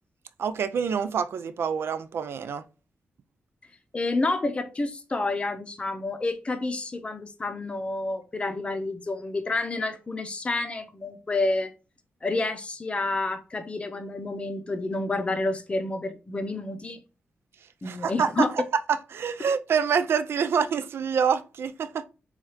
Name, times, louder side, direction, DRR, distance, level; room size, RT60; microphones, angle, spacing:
voice 1, 0.4-2.6 17.9-18.6 18.9-22.0, right 6 dB, 70° right, 0.4 m, -26 dB
voice 2, 3.9-11.7 12.2-17.0 17.8-18.5, left 2 dB, 25° left, 0.6 m, -29 dB
4.3 x 2.4 x 3.2 m
wide cardioid pair, 115°, 4 cm